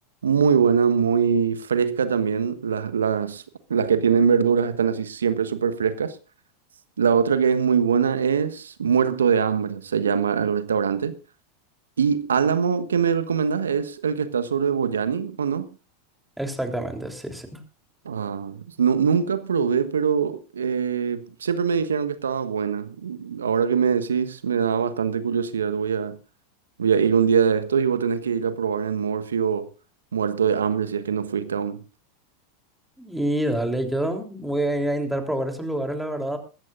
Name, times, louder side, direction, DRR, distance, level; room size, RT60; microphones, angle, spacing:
voice 1, 0.2-3.4 3.7-6.2 7.0-11.1 12.0-15.7 18.0-26.2 26.8-29.7 30.1-31.8, right 6 dB, 80° right, 1.2 m, -23 dB
voice 2, 16.4-17.6 33.0-36.4, right 1 dB, 5° right, 3.4 m, -27 dB
22.0 x 14.0 x 2.5 m
figure-of-eight pair, 90°, 0 cm